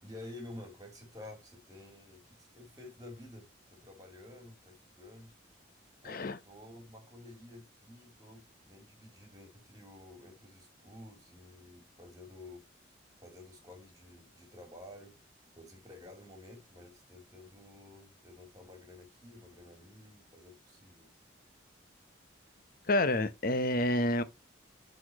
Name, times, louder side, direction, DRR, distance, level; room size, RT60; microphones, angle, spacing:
voice 1, 0.0-5.3 6.0-15.2 15.5-21.1, left 2 dB, 20° right, 3.2 m, -51 dB
voice 2, 6.0-6.4 22.9-24.2, left 1 dB, 45° left, 0.8 m, -28 dB
11.0 x 4.3 x 2.9 m
head